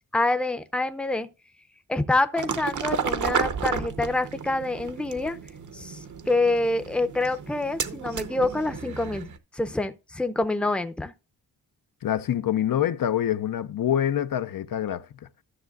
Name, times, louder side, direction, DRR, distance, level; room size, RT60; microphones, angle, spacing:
voice 1, 0.1-1.3 1.9-5.4 5.7-6.0 6.3-11.1, left 2 dB, 5° left, 0.6 m, -26 dB
sound 1, 2.4-9.4, right 6 dB, 50° right, 0.8 m, -32 dB
voice 2, 12.0-15.1, left 10 dB, 60° left, 0.6 m, -25 dB
13.0 x 6.6 x 2.4 m
wide cardioid pair, 155°, 37 cm